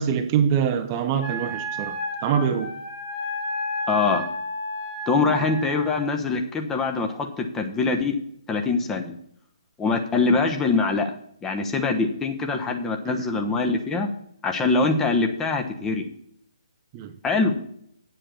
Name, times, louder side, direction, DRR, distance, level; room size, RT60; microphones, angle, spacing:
voice 1, 0.0-2.7 13.1-13.3 16.9-17.1, right 8 dB, 25° right, 0.7 m, -24 dB
Wind instrument woodwind instrument, 1.2-6.1, left 1 dB, 55° left, 3.1 m, -32 dB
voice 2, 3.9-4.3 5.1-8.2 8.5-9.1 9.8-11.1 11.4-14.1 14.4-16.1 17.2-17.5, left 3 dB, 10° left, 1.0 m, -23 dB
8.7 x 7.5 x 6.8 m
figure-of-eight pair, 135°, 3 cm